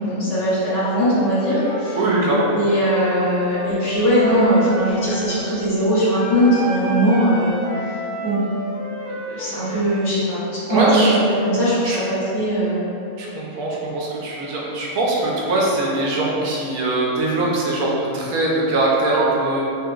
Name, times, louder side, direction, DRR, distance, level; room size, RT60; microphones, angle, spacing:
voice 1, 0.0-2.0 2.5-7.8 8.2-8.4 9.3-12.9, equal, 55° left, -11 dB, 1.4 m, -20 dB
Wind instrument woodwind instrument, 1.1-5.4 6.2-10.1, right 1 dB, 15° right, 1.3 m, -30 dB
voice 2, 2.0-2.5 10.7-11.2 11.8-12.0 13.2-19.6, right 2 dB, 75° right, -4 dB, 1.1 m, -21 dB
3.2 x 2.8 x 2.3 m, 2.7 s
omnidirectional pair, 1.5 m